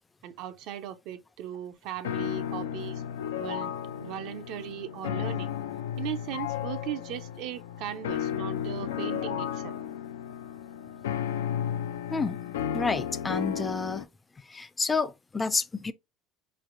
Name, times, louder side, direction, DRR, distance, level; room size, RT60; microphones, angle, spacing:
voice 1, 0.2-3.0 3.4-3.7 4.0-5.6 6.0-9.8, right 11 dB, 65° right, 0.5 m, -38 dB
sound 1, 2.0-14.0, left 9 dB, 85° left, 0.3 m, -33 dB
voice 2, 12.7-14.1 14.4-15.9, left 4 dB, 20° left, 0.4 m, -29 dB
4.2 x 3.1 x 2.5 m
hypercardioid pair, 80°, 0 cm